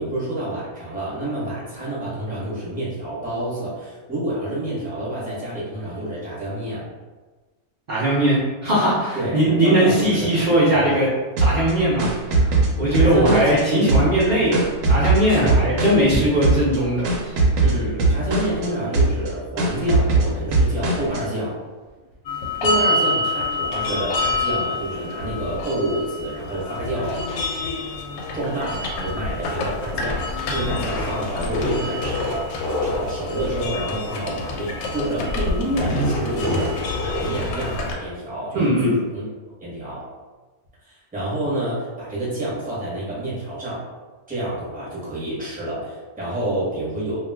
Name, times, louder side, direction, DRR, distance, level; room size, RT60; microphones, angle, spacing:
voice 1, 0.0-6.8 9.1-11.0 12.9-13.9 15.3-15.7 17.6-21.6 22.6-27.2 28.3-30.2 30.5-36.7 37.0-39.2 39.6-40.0 40.8-43.8 44.3-47.2, right 1 dB, 5° right, -8 dB, 0.8 m, -28 dB
voice 2, 7.9-11.1 11.4-12.5 12.8-17.1 38.5-38.9, right 1 dB, 50° right, -8 dB, 0.6 m, -19 dB
sound 1, 11.4-13.6 13.9-16.1 16.4-16.8 17.0-18.7 18.9-19.3 19.6-21.2, right 3 dB, 70° right, 1.0 m, -20 dB
sound 2, 22.3-37.9, left 2 dB, 85° left, 1.0 m, -28 dB
sound 3, 30.5-33.1 35.7-38.0, left 1 dB, 60° left, 0.7 m, -27 dB
2.4 x 2.3 x 3.3 m, 1.3 s
omnidirectional pair, 1.5 m